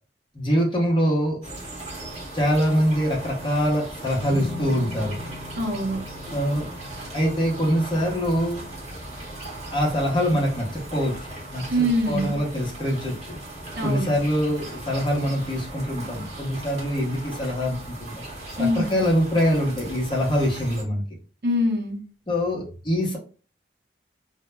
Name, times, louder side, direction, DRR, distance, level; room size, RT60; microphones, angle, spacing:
voice 1, 0.3-1.4 2.3-5.2 6.3-6.7 7.1-8.6 9.7-13.4 13.8-18.2 18.6-21.0 22.3-23.2, equal, 25° left, -2 dB, 0.7 m, -24 dB
sound 1, 1.4-20.8, right 1 dB, 35° right, 0.9 m, -38 dB
sound 2, 4.2-10.7, left 3 dB, 70° left, 0.6 m, -40 dB
voice 2, 5.6-6.0 11.7-12.4 13.8-14.1 18.6-19.0 21.4-22.0, equal, 55° right, 2 dB, 0.6 m, -24 dB
2.1 x 2.0 x 3.3 m, 0.37 s
head